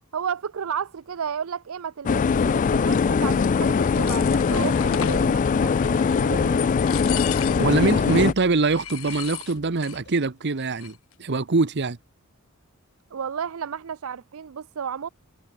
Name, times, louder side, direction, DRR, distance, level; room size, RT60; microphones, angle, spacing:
voice 1, 0.1-6.6 13.1-15.1, right 7 dB, 70° right, 0.5 m, -32 dB
sound 1, 2.0-8.3, left 5 dB, 35° left, 0.3 m, -21 dB
sound 2, 3.6-5.3 5.8-6.3 6.6-7.8 8.1-8.2 8.6-10.0 10.2-10.3 10.6-11.1, left 11 dB, 70° left, 2.3 m, -35 dB
voice 2, 7.6-12.0, right 3 dB, 55° right, 0.9 m, -23 dB
sound 3, 8.3-10.3, left 1 dB, 55° left, 2.5 m, -51 dB
head